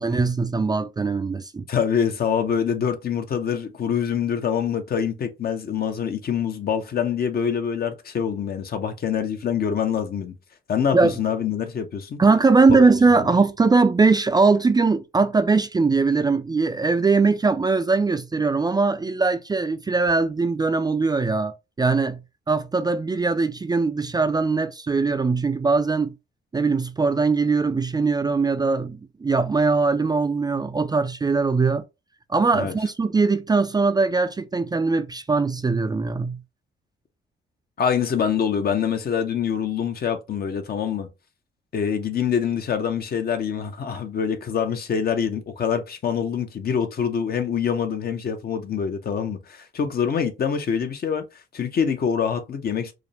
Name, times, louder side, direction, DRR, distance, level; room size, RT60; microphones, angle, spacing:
voice 1, 0.0-1.6 10.9-11.1 12.2-22.2 22.5-26.1 26.5-31.8 32.3-36.4, right 4 dB, 20° right, 0.4 m, -21 dB
voice 2, 1.7-10.3 10.7-12.2 12.7-13.3 32.5-32.7 37.8-41.1 41.7-51.3 51.5-52.9, left 7 dB, 50° left, 0.9 m, -25 dB
4.9 x 2.0 x 3.3 m
cardioid pair, 90°, 20 cm